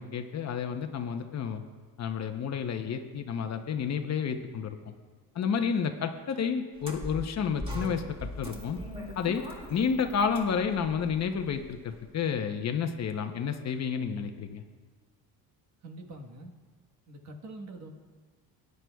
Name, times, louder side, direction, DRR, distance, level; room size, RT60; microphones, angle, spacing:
voice 1, 0.0-1.6 2.0-4.9 5.3-8.8 9.2-9.4 9.7-14.6, left 6 dB, 45° left, 7 dB, 0.8 m, -30 dB
sound 1, 6.8-12.0, left 1 dB, 15° right, 2.1 m, -41 dB
voice 2, 15.8-16.5 17.1-17.9, right 2 dB, 45° right, 4 dB, 1.4 m, -44 dB
19.0 x 10.5 x 2.3 m, 1.5 s
cardioid pair, 120°, 38 cm